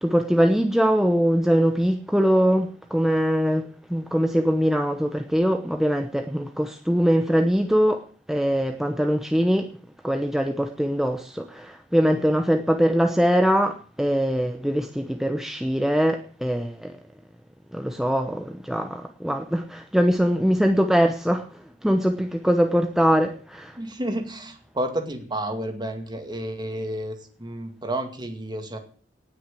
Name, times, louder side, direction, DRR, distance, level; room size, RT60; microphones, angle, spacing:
voice 1, 0.0-8.0 8.3-9.7 10.0-16.9 17.7-23.8, equal, ahead, 5 dB, 0.9 m, -22 dB
voice 2, 23.8-28.8, right 1 dB, 25° right, 6 dB, 2.2 m, -31 dB
18.5 x 6.4 x 8.3 m, 0.43 s
head